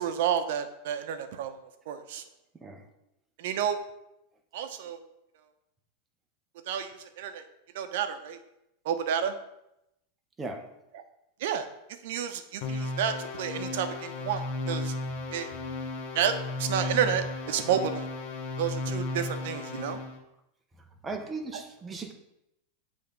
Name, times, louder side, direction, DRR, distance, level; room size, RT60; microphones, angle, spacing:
voice 1, 0.0-1.6 1.9-2.2 3.4-3.8 4.5-5.0 6.7-7.4 7.7-8.4 8.8-9.3 11.4-11.7 12.0-14.9 15.3-15.5 16.1-16.3 16.6-18.1 18.6-20.0 21.5-21.6, right 8 dB, 65° right, 8 dB, 0.7 m, -30 dB
voice 2, 2.5-2.9 10.4-10.7 21.0-22.1, right 3 dB, 10° right, 3 dB, 0.7 m, -37 dB
sound 1, 12.6-20.2, left 2 dB, 50° left, 1.2 m, -34 dB
7.7 x 3.5 x 5.2 m, 0.85 s
supercardioid pair, 160°, 0 cm